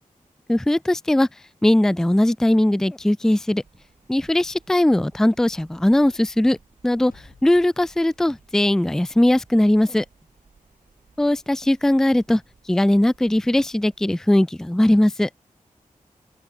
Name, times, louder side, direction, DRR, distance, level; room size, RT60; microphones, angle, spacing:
voice 1, 0.5-1.3 1.6-3.6 4.1-6.6 6.8-7.1 7.4-10.0 11.2-12.4 12.7-15.3, left 1 dB, 5° left, 0.3 m, -19 dB
sound 1, 3.6-14.1, right 5 dB, 80° right, 7.3 m, -58 dB
sound 2, 6.9-9.1, left 6 dB, 90° left, 3.9 m, -56 dB
open air
cardioid pair, 55°, 14 cm